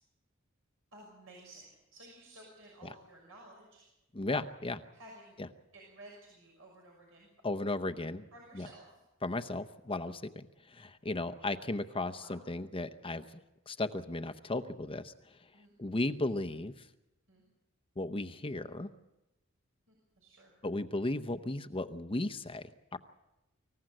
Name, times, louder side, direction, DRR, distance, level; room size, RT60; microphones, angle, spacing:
voice 1, 0.9-3.9 4.9-5.4 5.7-7.3 8.3-9.0 12.2-12.4 15.5-15.7 17.3-17.4 19.9-20.5, right 1 dB, 80° right, -2 dB, 6.2 m, -54 dB
voice 2, 4.1-4.8 7.4-8.3 8.5-8.7 9.2-15.4 15.8-16.9 18.0-18.9 20.6-23.0, left 2 dB, 25° left, 9 dB, 0.8 m, -35 dB
25.0 x 15.5 x 7.8 m, 0.95 s
head